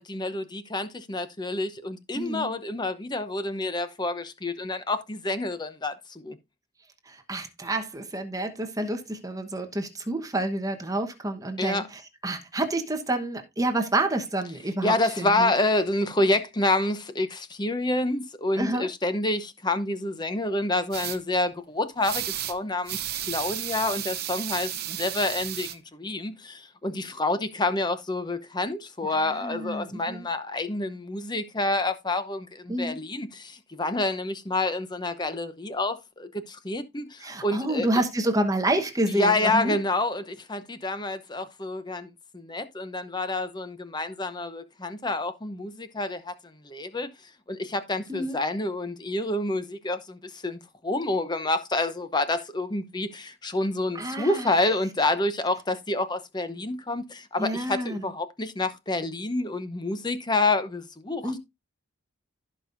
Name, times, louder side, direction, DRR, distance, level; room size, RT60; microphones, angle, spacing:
voice 1, 0.0-6.4 11.6-11.9 14.8-37.9 39.1-46.3 46.6-47.1 47.5-61.4, left 2 dB, 20° left, 0.8 m, -28 dB
voice 2, 2.2-2.5 7.1-15.5 18.6-18.9 29.1-30.3 32.7-33.0 37.2-39.7 48.1-48.4 53.9-54.5 57.4-58.1 61.2-61.4, right 1 dB, 15° right, 1.0 m, -29 dB
sound 1, 20.9-21.2 22.0-22.6 22.9-25.7, right 12 dB, 45° right, 0.7 m, -33 dB
15.5 x 5.4 x 2.6 m
head